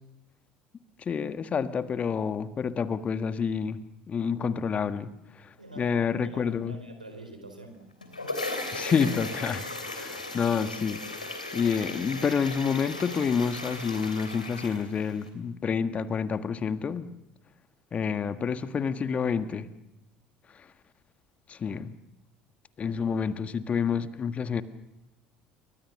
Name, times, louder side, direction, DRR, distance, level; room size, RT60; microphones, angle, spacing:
voice 1, 1.0-3.8 4.1-5.1 5.3-6.8 8.7-9.6 9.9-11.0 11.5-17.1 17.9-19.7 20.5-20.7 21.5-21.9 22.8-24.6, left 6 dB, 35° left, 11 dB, 1.6 m, -28 dB
voice 2, 5.6-7.8, right 2 dB, 90° right, 6 dB, 4.2 m, -45 dB
sound 1, 7.8-15.3, left 2 dB, 90° left, 3.0 m, -37 dB
28.5 x 24.0 x 6.6 m, 0.92 s
figure-of-eight pair, 65°, 4 cm